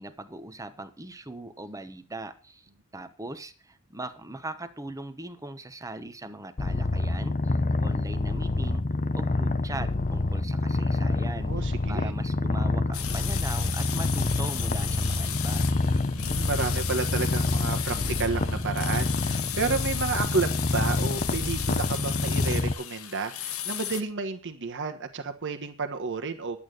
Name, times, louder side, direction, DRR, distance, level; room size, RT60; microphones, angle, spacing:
voice 1, 0.0-8.8 9.1-15.7, right 2 dB, 15° right, 10 dB, 1.0 m, -40 dB
Purr, 6.6-22.7, left 2 dB, 35° left, 0.7 m, -27 dB
voice 2, 11.4-12.1 16.1-26.6, right 4 dB, 55° right, 6 dB, 1.4 m, -31 dB
sound 1, 12.9-24.0, left 11 dB, 70° left, 1.0 m, -35 dB
11.0 x 8.6 x 6.5 m, 0.37 s
head